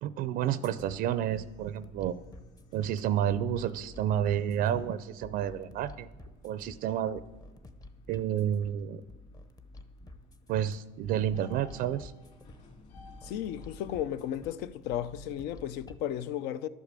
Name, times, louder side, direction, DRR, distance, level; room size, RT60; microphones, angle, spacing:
voice 1, 0.0-2.2 2.7-6.1 6.4-7.2 8.1-9.0 10.5-12.1, right 10 dB, 55° right, 0.5 m, -30 dB
sound 1, 0.6-16.0, left 2 dB, 20° left, 0.8 m, -51 dB
sound 2, 0.9-15.3, left 2 dB, 45° left, 2.9 m, -58 dB
voice 2, 13.2-16.7, left 11 dB, 70° left, 0.6 m, -34 dB
11.5 x 8.3 x 7.5 m
cardioid pair, 135°, 18 cm